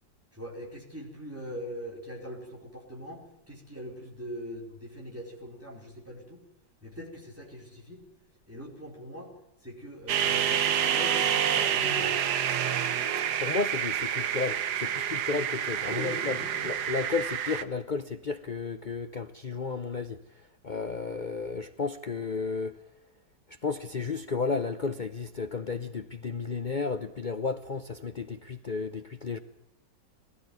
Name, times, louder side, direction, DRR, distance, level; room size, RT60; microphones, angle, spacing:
voice 1, 0.3-6.4 6.8-8.0 8.5-9.3 9.6-12.1 15.9-16.7, equal, 5° right, 4.7 m, -41 dB
sound 1, 10.1-17.6, right 9 dB, 65° right, 1.5 m, -28 dB
voice 2, 13.4-16.4 16.6-20.2 20.6-22.8 23.6-29.4, left 4 dB, 65° left, 0.4 m, -33 dB
20.5 x 13.5 x 9.4 m
omnidirectional pair, 2.0 m